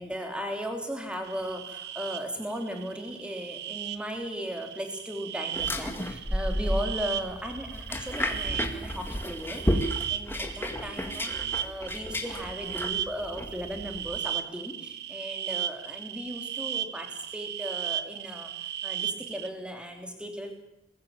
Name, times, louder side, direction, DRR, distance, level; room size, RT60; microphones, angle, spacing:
voice 1, 0.0-18.5 18.8-20.6, equal, 5° right, 3 dB, 3.3 m, -37 dB
sound 1, 1.2-19.5, right 11 dB, 65° right, 1.1 m, -36 dB
sound 2, 5.5-14.2, equal, 10° left, 2.0 m, -32 dB
21.0 x 15.5 x 9.1 m, 0.82 s
head